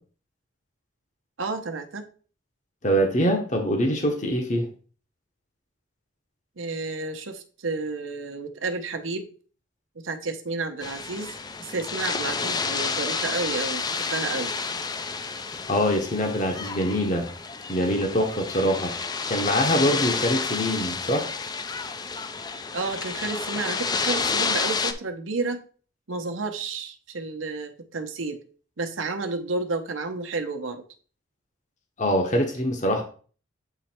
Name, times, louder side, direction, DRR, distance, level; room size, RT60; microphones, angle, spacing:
voice 1, 1.4-2.0 6.6-9.3 10.0-11.3 11.6-14.6 22.7-25.6 26.1-28.4 28.8-30.8, right 3 dB, 85° right, 6 dB, 0.8 m, -31 dB
voice 2, 2.8-4.7 15.7-17.3 17.7-18.9 19.3-21.3 32.0-33.0, equal, 40° left, 3 dB, 1.0 m, -24 dB
sound 1, 10.8-24.9, left 5 dB, 20° left, 0.4 m, -30 dB
8.0 x 3.2 x 4.4 m, 0.41 s
head